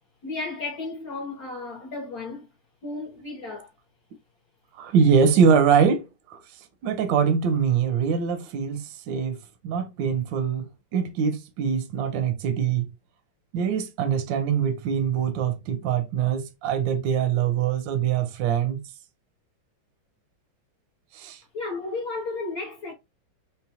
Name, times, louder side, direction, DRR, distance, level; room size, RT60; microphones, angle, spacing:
voice 1, 0.2-2.5 2.8-3.7 21.5-22.9, left 3 dB, 60° left, 1.0 m, -33 dB
voice 2, 4.8-6.4 6.8-12.9 13.5-18.9 21.1-21.4, right 7 dB, 75° right, 1.2 m, -23 dB
3.8 x 2.1 x 2.7 m
omnidirectional pair, 2.3 m